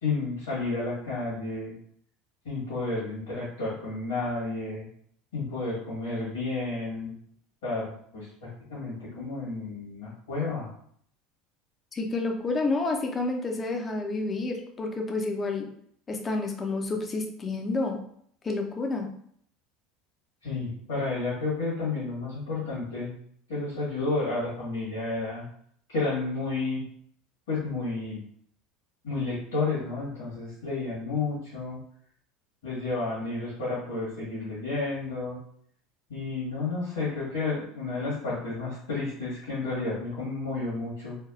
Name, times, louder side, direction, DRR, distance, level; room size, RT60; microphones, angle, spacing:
voice 1, 0.0-1.7 2.4-4.9 5.3-7.1 7.6-10.7 20.4-23.1 23.5-25.5 25.9-26.8 27.5-28.2 29.0-31.8 32.6-35.4 36.1-41.2, left 3 dB, 75° left, -9 dB, 1.4 m, -31 dB
voice 2, 11.9-15.7 16.1-18.0 18.4-19.1, left 3 dB, 30° left, 2 dB, 0.6 m, -29 dB
3.4 x 2.2 x 2.4 m, 0.64 s
hypercardioid pair, 80°, 0 cm